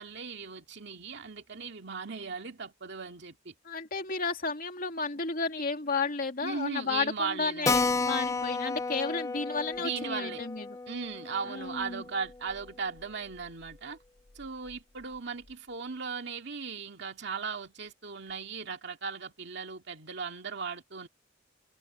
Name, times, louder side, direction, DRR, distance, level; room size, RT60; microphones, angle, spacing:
voice 1, 0.0-3.5 6.4-8.0 9.8-10.4 10.9-14.0 14.4-21.1, right 5 dB, 65° right, 2.3 m, -37 dB
voice 2, 3.6-10.8 11.4-12.0, left 4 dB, 50° left, 2.6 m, -32 dB
Keyboard (musical), 7.7-12.7 13.0-13.1 13.4-13.5 13.7-13.8 14.4-14.7, left 4 dB, 15° left, 0.3 m, -33 dB
head